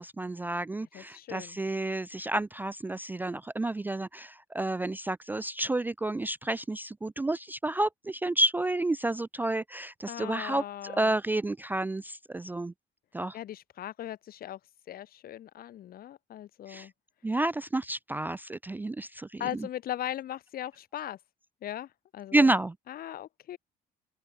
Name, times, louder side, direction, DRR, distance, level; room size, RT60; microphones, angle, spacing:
voice 1, 0.0-12.7 13.1-13.4 16.7-16.9 17.2-19.4 22.3-22.7, right 2 dB, 10° right, 0.4 m, -30 dB
voice 2, 0.8-1.6 10.1-11.1 13.3-14.6 14.9-16.9 19.4-21.2 21.6-22.6 22.9-23.6, left 12 dB, 60° left, 3.6 m, -39 dB
open air
cardioid pair, 110°, 17 cm